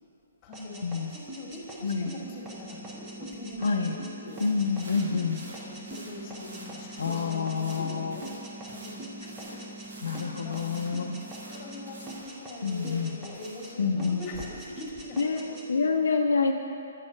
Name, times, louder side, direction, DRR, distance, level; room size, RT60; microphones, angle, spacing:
voice 1, 0.4-4.4 4.8-5.1 5.7-8.3 8.7-9.6 10.4-10.7 11.5-15.9, left 2 dB, 25° left, -2 dB, 1.7 m, -43 dB
sound 1, 0.5-9.9 10.1-11.8 12.1-13.7 14.0-15.7, right 1 dB, 15° right, 1.0 m, -44 dB
voice 2, 1.8-2.1 3.6-3.9 4.4-5.4 7.0-8.2 10.0-11.2 12.6-13.2 13.8-14.3 15.2-16.5, left 5 dB, 80° left, 2 dB, 0.5 m, -27 dB
sound 2, 2.2-12.2, right 1 dB, ahead, 0.4 m, -45 dB
sound 3, 4.3-13.8, right 1 dB, 75° right, 1.5 m, -49 dB
8.0 x 4.4 x 6.2 m, 2.8 s
hypercardioid pair, 145°, 0 cm